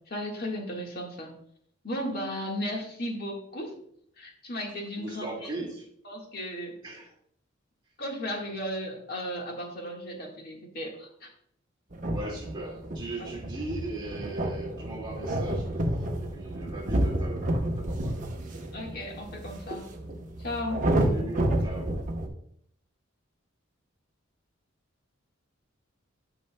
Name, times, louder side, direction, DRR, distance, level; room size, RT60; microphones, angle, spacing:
voice 1, 0.1-1.3 1.8-3.7 4.2-5.5 6.1-6.8 8.0-11.3 13.2-13.3 18.7-19.9 20.4-20.8, equal, 50° left, 0 dB, 1.6 m, -35 dB
voice 2, 5.0-5.8 6.8-7.1 12.0-18.6 21.0-22.0, right 2 dB, 25° right, -3 dB, 2.0 m, -39 dB
sound 1, 11.9-22.3, right 1 dB, 40° right, 0.9 m, -30 dB
12.0 x 5.4 x 2.2 m, 0.67 s
head